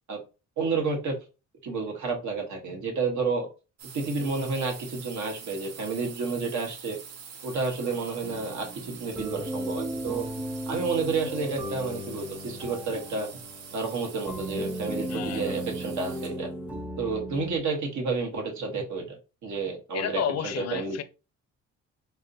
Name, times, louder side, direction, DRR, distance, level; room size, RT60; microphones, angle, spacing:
voice 1, 0.6-1.2 1.6-3.5 3.9-7.0 7.4-10.3 10.7-13.4 13.7-16.5 17.0-21.0, right 4 dB, 70° right, 1.2 m, -30 dB
sound 1, 3.8-16.5, right 6 dB, 55° right, 0.6 m, -45 dB
sound 2, 8.2-17.6, right 1 dB, 5° right, 0.5 m, -36 dB
voice 2, 15.1-15.5 19.9-21.0, left 9 dB, 60° left, 0.5 m, -31 dB
4.0 x 2.0 x 2.7 m
cardioid pair, 90°, 30 cm